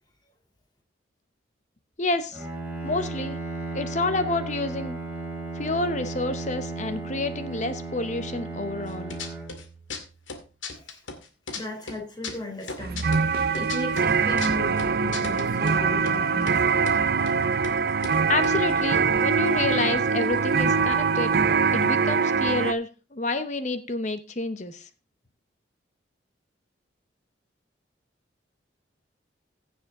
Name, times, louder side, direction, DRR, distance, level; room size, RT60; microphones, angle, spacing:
voice 1, 2.0-2.4 2.8-3.4 3.7-5.0 5.6-9.2 18.3-21.3 21.7-24.9, left 2 dB, 40° left, 0.9 m, -29 dB
Bowed string instrument, 2.3-10.3, right 3 dB, 10° right, 3.2 m, -35 dB
sound 1, 8.9-9.6 9.9-11.6 11.9-15.8 16.1-16.2 16.4-17.0 17.3-17.4 17.6-17.8 18.0-19.7 20.0-20.1 20.2-20.6, left 4 dB, 90° left, 2.2 m, -37 dB
voice 2, 11.5-13.1 13.5-16.6, left 1 dB, 20° left, 3.2 m, -36 dB
sound 2, 12.8-22.7, right 5 dB, 55° right, 0.5 m, -23 dB
15.5 x 7.2 x 3.7 m
head